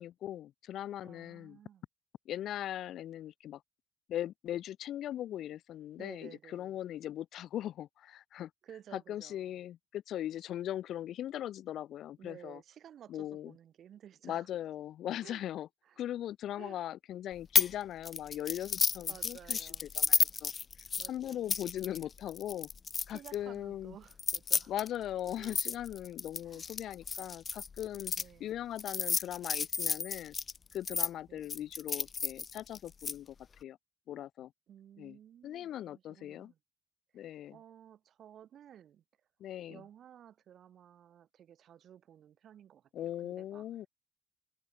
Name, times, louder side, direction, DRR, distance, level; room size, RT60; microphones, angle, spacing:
voice 1, 0.0-1.6 2.3-3.6 4.1-8.5 8.9-12.6 13.1-13.5 14.2-15.7 16.0-20.5 21.1-22.7 23.1-24.0 24.7-28.1 28.4-30.3 30.7-33.4 33.6-33.8 34.1-34.5 35.0-35.2 35.4-36.5 37.1-37.6 39.4-39.8 42.9-43.9, left 12 dB, 75° left, 0.7 m, -39 dB
voice 2, 1.0-1.8 6.0-6.8 8.6-9.6 12.2-14.5 15.2-15.4 15.8-16.0 16.6-16.8 19.1-19.9 21.0-21.6 23.1-24.7 25.4-25.6 26.4-26.7 28.2-28.6 31.3-31.6 34.7-36.6 37.1-39.0 39.7-43.6, right 10 dB, 65° right, 6.5 m, -55 dB
sound 1, 17.5-17.7 18.0-23.3 24.1-28.2 28.8-31.1 31.5-33.1, left 5 dB, 40° left, 1.0 m, -32 dB
cardioid pair, 90°, 0 cm